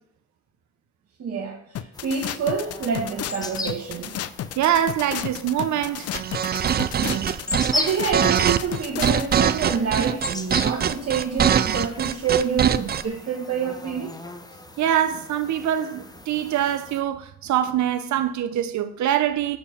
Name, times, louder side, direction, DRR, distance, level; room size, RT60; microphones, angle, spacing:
voice 1, 1.2-4.2 7.0-7.3 7.7-14.2, right 6 dB, 55° right, 1.3 m, -27 dB
sound 1, 1.7-9.4, left 11 dB, 55° left, 0.5 m, -32 dB
sound 2, 1.9-17.0, left 2 dB, 15° left, 0.7 m, -37 dB
voice 2, 4.6-6.1 14.8-19.6, right 10 dB, 70° right, 0.7 m, -24 dB
sound 3, 6.1-13.0, right 8 dB, 35° right, 0.4 m, -22 dB
7.4 x 4.4 x 6.9 m
cardioid pair, 90°, 30 cm